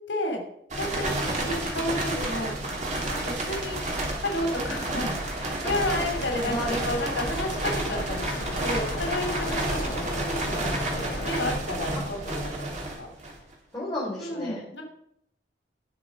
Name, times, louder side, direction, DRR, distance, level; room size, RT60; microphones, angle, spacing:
voice 1, 0.1-0.4 0.7-2.5 3.1-3.8 4.2-8.4 8.6-12.7 13.0-13.1 14.2-14.8, left 1 dB, 80° left, 3 dB, 3.0 m, -31 dB
sound 1, 0.7-13.5, right 1 dB, 40° right, 3.0 m, -30 dB
Centennial Pool Rainier Police Stn, 5.8-11.5, left 1 dB, 60° left, 3.0 m, -37 dB
voice 2, 6.4-6.8 13.7-14.8, left 1 dB, 15° left, -7 dB, 4.0 m, -33 dB
18.5 x 6.2 x 5.5 m, 0.73 s
head